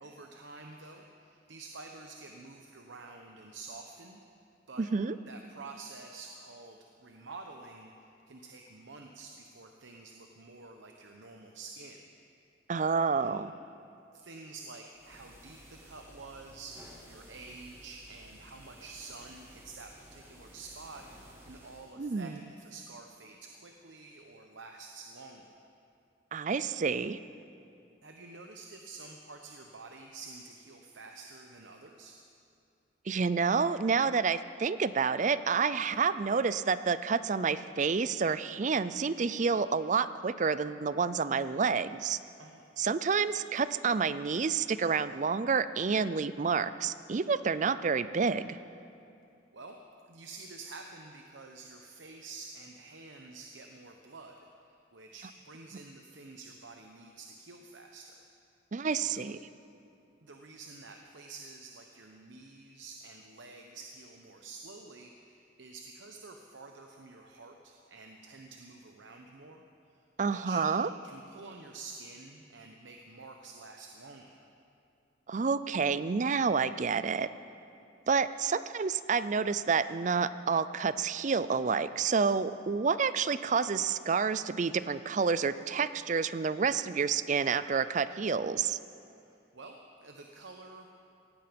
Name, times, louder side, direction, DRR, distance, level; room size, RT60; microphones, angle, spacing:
voice 1, 0.0-4.2 4.7-4.9 5.3-12.0 13.2-13.4 14.1-25.5 28.0-32.2 42.4-42.6 49.5-49.8 50.1-54.4 54.7-58.1 59.0-59.3 60.2-69.6 69.9-70.6 71.0-74.5 89.2-90.9, right 3 dB, 80° right, 3 dB, 1.0 m, -49 dB
voice 2, 4.8-5.1 12.7-13.5 22.0-22.4 26.3-27.2 33.1-42.2 42.8-48.6 58.7-59.4 70.2-70.9 75.3-77.3 78.1-88.8, right 5 dB, 40° right, 15 dB, 0.4 m, -29 dB
sound 1, 14.9-22.0, equal, 15° right, 2.0 m, -55 dB
17.5 x 15.0 x 5.2 m, 2.6 s
head